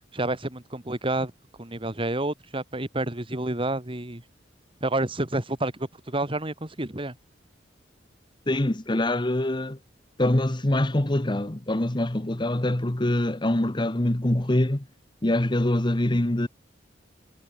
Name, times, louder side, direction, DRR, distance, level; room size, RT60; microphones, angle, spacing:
voice 1, 0.1-1.3 1.6-4.2 4.8-7.1, right 2 dB, 30° right, 2.4 m, -29 dB
voice 2, 8.5-9.8 10.2-14.8 15.2-16.5, left 1 dB, 25° left, 1.1 m, -24 dB
head